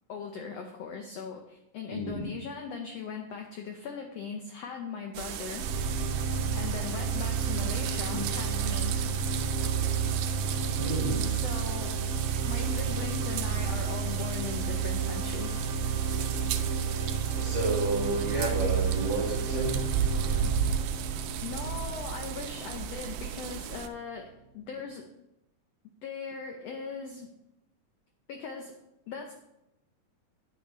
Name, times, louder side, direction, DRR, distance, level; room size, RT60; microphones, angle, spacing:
voice 1, 0.1-5.7 6.5-9.0 11.3-11.9 12.5-15.6 16.1-16.2 21.4-25.1 26.0-27.3 28.3-28.8 29.1-29.3, left 5 dB, 85° left, 3 dB, 1.4 m, -39 dB
voice 2, 1.9-2.3 8.0-8.2 10.7-11.2 17.3-19.7, right 2 dB, 40° right, -3 dB, 2.3 m, -31 dB
sound 1, 5.1-23.9, right 8 dB, 85° right, 1.6 m, -35 dB
sound 2, 5.5-23.6, right 6 dB, 10° left, 0.8 m, -31 dB
9.0 x 8.9 x 3.2 m, 0.88 s
omnidirectional pair, 3.9 m